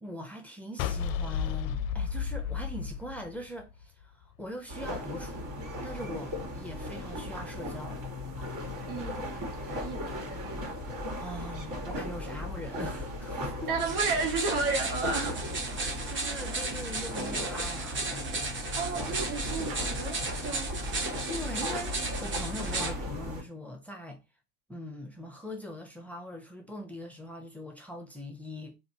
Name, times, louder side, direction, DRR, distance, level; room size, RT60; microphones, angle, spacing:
voice 1, 0.0-5.5 5.8-8.0 11.2-13.7 15.8-18.5 21.3-24.2 24.7-28.8, equal, 5° left, 0.8 m, -41 dB
sound 1, 0.8-4.0, left 7 dB, 65° left, 0.5 m, -32 dB
sound 2, 4.7-23.4, left 1 dB, 45° right, 1.8 m, -37 dB
voice 2, 8.9-10.9 13.7-15.4 18.8-20.7, right 4 dB, 75° right, 1.4 m, -33 dB
sound 3, 13.8-22.9, right 3 dB, 25° right, 0.9 m, -35 dB
3.8 x 2.7 x 2.8 m
hypercardioid pair, 90°, 44 cm